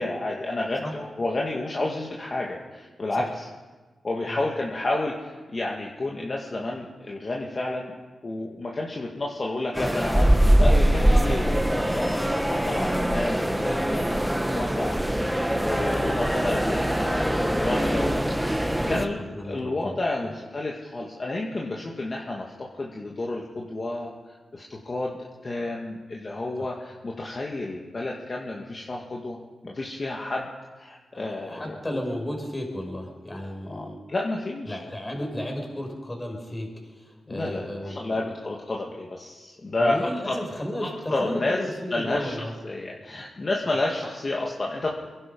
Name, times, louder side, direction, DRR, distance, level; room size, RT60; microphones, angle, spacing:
voice 1, 0.0-3.4 4.0-7.9 8.2-18.6 18.9-25.2 25.4-29.4 29.6-30.5 30.8-31.8 33.7-34.8 37.3-40.0 40.3-40.4 41.1-41.6 41.9-44.9, left 2 dB, 40° left, -2 dB, 2.0 m, -30 dB
sound 1, 9.7-19.1, right 1 dB, 5° right, 1.1 m, -23 dB
voice 2, 18.7-20.3 26.6-26.7 31.1-34.0 34.7-38.1 39.8-42.5 43.6-43.7, left 1 dB, 20° left, 2 dB, 4.7 m, -34 dB
23.0 x 11.0 x 5.5 m, 1.3 s
cardioid pair, 65°, 0 cm